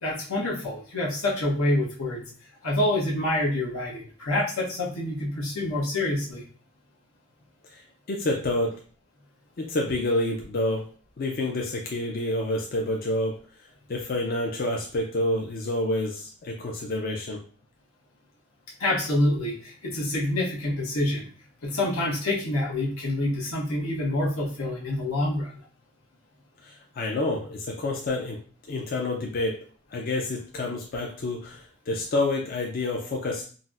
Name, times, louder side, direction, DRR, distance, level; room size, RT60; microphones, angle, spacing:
voice 1, 0.0-2.2 2.6-6.4 18.8-21.3 21.6-25.5, left 1 dB, 85° left, -3 dB, 0.9 m, -27 dB
voice 2, 8.1-8.7 9.6-10.9 11.2-13.4 13.9-17.4 26.6-28.4 28.7-29.6 29.9-33.4, left 1 dB, 45° left, 0 dB, 0.4 m, -28 dB
3.9 x 2.0 x 2.4 m, 0.41 s
head